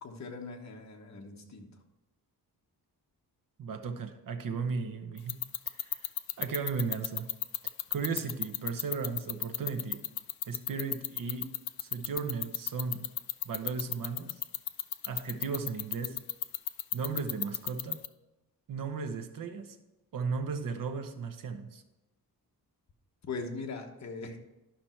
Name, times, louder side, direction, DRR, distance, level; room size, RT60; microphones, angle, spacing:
voice 1, 0.0-1.7 23.2-24.4, left 4 dB, 50° left, 3 dB, 1.2 m, -40 dB
voice 2, 3.6-5.4 5.8-6.1 6.4-7.3 7.9-10.1 10.5-11.5 11.8-13.1 13.4-14.4 15.1-16.2 16.9-18.0 18.7-19.8 20.1-21.8, right 5 dB, 65° right, 7 dB, 1.0 m, -35 dB
sound 1, 5.2-18.1, left 13 dB, 75° left, 0.5 m, -31 dB
11.5 x 6.0 x 4.4 m, 1.0 s
wide cardioid pair, 150°, 37 cm